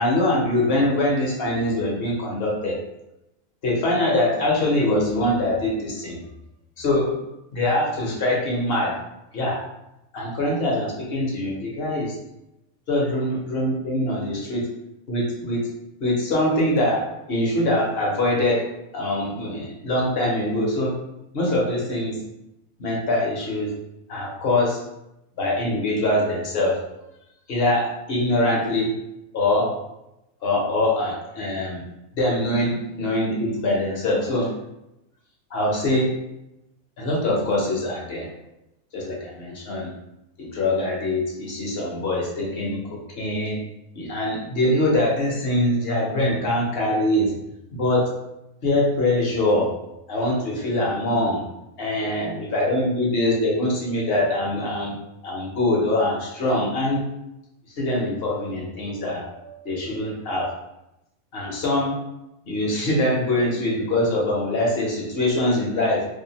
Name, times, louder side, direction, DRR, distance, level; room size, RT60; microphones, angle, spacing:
voice 1, 0.0-2.8 3.6-6.2 6.8-7.1 7.5-9.0 9.3-9.6 10.1-12.2 12.9-14.7 15.1-15.7 16.0-18.6 18.9-20.9 21.3-22.2 22.8-23.7 24.1-24.8 25.4-26.8 27.5-28.9 29.3-29.8 30.4-31.8 32.1-34.5 35.5-36.1 37.0-38.3 38.9-39.9 40.4-43.6 44.0-47.3 47.7-48.1 48.6-49.7 50.1-51.4 51.8-54.9 55.2-57.0 57.8-60.5 61.3-62.0 62.5-66.1, left 1 dB, 55° left, -2 dB, 0.8 m, -23 dB
2.7 x 2.2 x 2.8 m, 0.88 s
omnidirectional pair, 1.5 m